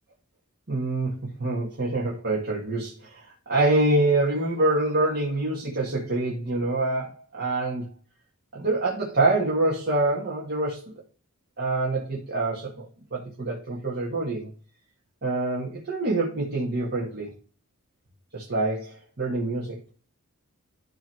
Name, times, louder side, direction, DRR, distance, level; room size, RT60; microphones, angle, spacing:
voice 1, 0.7-7.9 8.5-10.9 11.6-14.5 15.2-17.3 18.3-19.8, right 2 dB, 50° right, -3 dB, 1.8 m, -26 dB
11.0 x 3.7 x 4.4 m, 0.38 s
head